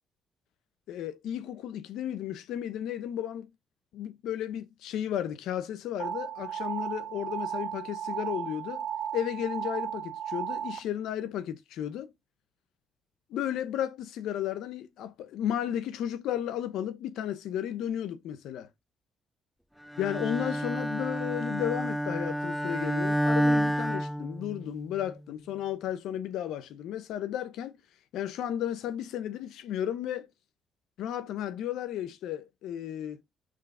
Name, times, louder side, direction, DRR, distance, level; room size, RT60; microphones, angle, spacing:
voice 1, 0.9-3.5 3.9-8.9 9.1-12.1 13.3-18.7 20.0-27.8 28.1-30.3 31.0-33.2, left 10 dB, 85° left, 0.8 m, -34 dB
sound 1, 6.0-10.8, right 9 dB, 60° right, 1.4 m, -35 dB
Bowed string instrument, 19.9-24.9, equal, ahead, 0.4 m, -29 dB
6.6 x 3.2 x 5.4 m
cardioid pair, 90°, 0 cm